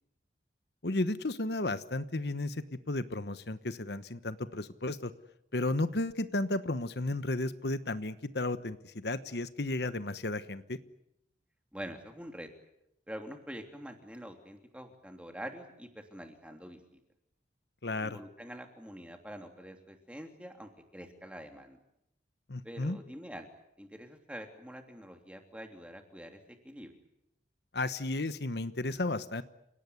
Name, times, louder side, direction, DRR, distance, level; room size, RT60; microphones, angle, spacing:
voice 1, 0.8-5.1 5.5-10.8 17.8-18.2 22.5-23.0 27.7-29.4, left 2 dB, 70° left, 12 dB, 1.2 m, -33 dB
voice 2, 11.7-12.5 13.1-17.0 18.0-21.8 22.6-23.5 23.8-26.9, equal, 5° right, 5 dB, 3.1 m, -46 dB
30.0 x 18.0 x 9.6 m, 0.80 s
head